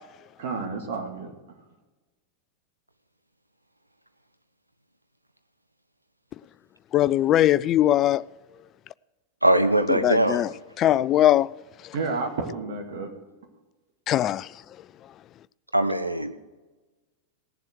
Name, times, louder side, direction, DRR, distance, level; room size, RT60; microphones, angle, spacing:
voice 1, 0.4-1.3 11.9-13.1, right 4 dB, 55° right, 2.2 m, -30 dB
voice 2, 6.9-8.2 10.0-10.5 10.8-11.5 14.1-14.4, left 12 dB, 30° left, 0.3 m, -20 dB
voice 3, 9.4-10.4 15.7-16.3, right 1 dB, 85° right, 0.9 m, -21 dB
18.0 x 7.4 x 6.4 m
figure-of-eight pair, 90°, 0 cm